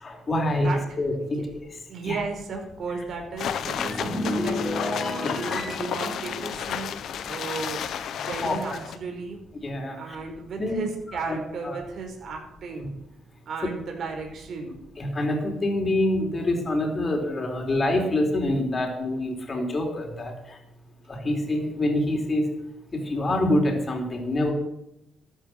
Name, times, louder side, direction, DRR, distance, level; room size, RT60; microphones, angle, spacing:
voice 1, 0.0-1.4 2.0-2.2 4.0-4.1 5.2-5.3 8.4-8.8 9.6-10.2 10.6-10.8 11.1-11.4 11.6-11.8 15.0-20.6 21.1-22.4 22.9-24.5, left 1 dB, 30° left, 2 dB, 4.1 m, -26 dB
voice 2, 1.9-7.0 7.3-9.4 9.9-12.9 13.4-14.7, right 4 dB, 60° right, 3 dB, 4.7 m, -35 dB
sound 1, 3.4-9.0, left 9 dB, 70° left, 1.0 m, -32 dB
sound 2, 3.5-8.2 8.4-8.8, left 1 dB, 10° left, 4.6 m, -33 dB
13.5 x 8.5 x 7.8 m, 0.85 s
cardioid pair, 90°, 0 cm